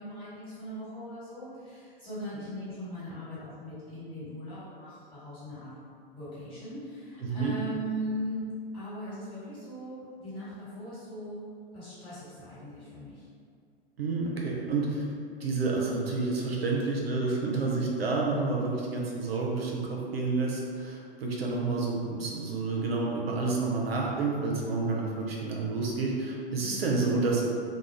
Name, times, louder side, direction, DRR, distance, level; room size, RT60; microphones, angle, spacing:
voice 1, 0.0-5.7 6.1-8.5 8.7-13.3, equal, 15° left, -12 dB, 1.5 m, -39 dB
voice 2, 7.2-7.6 14.0-15.0 15.4-27.4, right 3 dB, 75° right, -2 dB, 0.5 m, -29 dB
2.4 x 2.1 x 3.1 m, 2.2 s
figure-of-eight pair, 95°, 30 cm